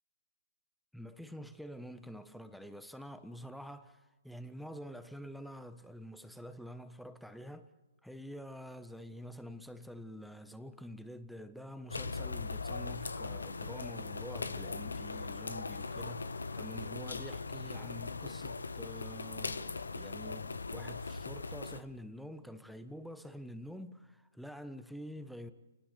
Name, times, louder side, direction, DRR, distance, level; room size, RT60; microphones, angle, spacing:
voice 1, 0.9-7.7 8.0-25.5, equal, ahead, 1.3 m, -47 dB
sound 1, 11.9-21.8, left 4 dB, 80° left, 1.4 m, -40 dB
30.0 x 19.0 x 6.9 m
figure-of-eight pair, 130°, 0 cm